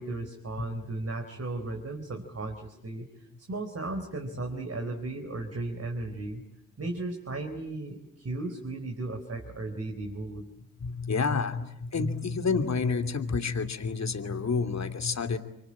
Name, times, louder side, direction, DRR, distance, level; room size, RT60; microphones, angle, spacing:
voice 1, 0.0-6.4 6.8-10.5, right 2 dB, 45° right, 4 dB, 4.4 m, -35 dB
voice 2, 10.8-15.4, left 4 dB, 50° left, 7 dB, 2.8 m, -29 dB
25.0 x 24.5 x 8.9 m, 0.82 s
hypercardioid pair, 40°, 35 cm